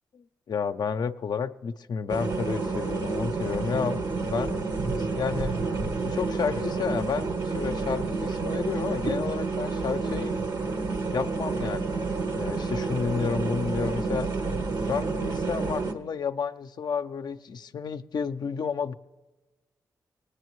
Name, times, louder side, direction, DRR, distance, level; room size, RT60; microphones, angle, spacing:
voice 1, 0.5-4.6 5.0-5.6 6.0-10.3 11.1-12.0 12.4-14.3 14.9-18.9, left 6 dB, 65° left, 9 dB, 0.5 m, -31 dB
sound 1, 2.1-15.9, right 3 dB, 65° right, 1.1 m, -29 dB
19.5 x 9.7 x 3.1 m, 1.1 s
supercardioid pair, 45°, 8 cm